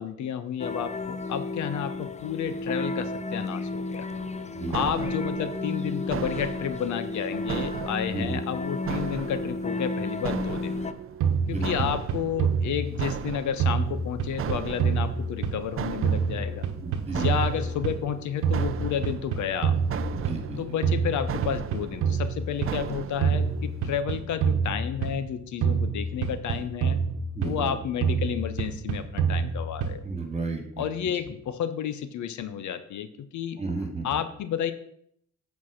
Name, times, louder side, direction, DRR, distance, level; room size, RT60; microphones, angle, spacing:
voice 1, 0.0-4.1 4.7-10.8 11.5-16.7 17.1-20.0 20.6-27.0 27.4-30.0 30.8-33.6 34.0-34.7, left 9 dB, 70° left, 12 dB, 0.8 m, -31 dB
sound 1, 0.6-10.9, left 2 dB, 25° left, 0.6 m, -32 dB
sound 2, 4.1-24.0, right 9 dB, 45° right, 0.5 m, -37 dB
voice 2, 8.1-8.4 11.5-11.9 16.8-17.3 20.1-20.6 22.8-22.9 27.3-27.8 30.0-30.9 33.6-34.2, right 3 dB, 20° right, 5 dB, 2.1 m, -33 dB
sound 3, 11.2-13.3 13.6-15.8 16.0-18.1 18.4-20.5 20.8-22.8 23.2-25.3 25.6-27.7 28.0-30.1, right 6 dB, 80° right, 1.1 m, -27 dB
8.2 x 4.7 x 6.3 m, 0.69 s
cardioid pair, 90°, 30 cm